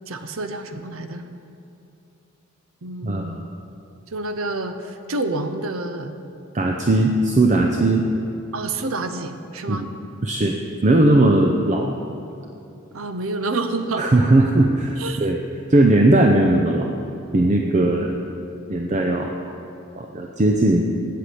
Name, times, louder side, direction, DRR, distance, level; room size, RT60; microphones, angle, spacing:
voice 1, 0.1-1.3 2.8-3.4 4.1-6.2 8.5-9.9 12.9-14.1 15.0-15.3, right 2 dB, 75° right, 8 dB, 0.7 m, -28 dB
voice 2, 3.0-3.4 6.5-8.0 9.7-9.9 10.2-10.5 10.8-11.9 14.0-15.4 15.7-16.9 17.3-18.1 18.7-19.3 20.0-20.9, right 2 dB, 35° right, 2 dB, 0.6 m, -18 dB
8.2 x 7.7 x 8.4 m, 2.7 s
head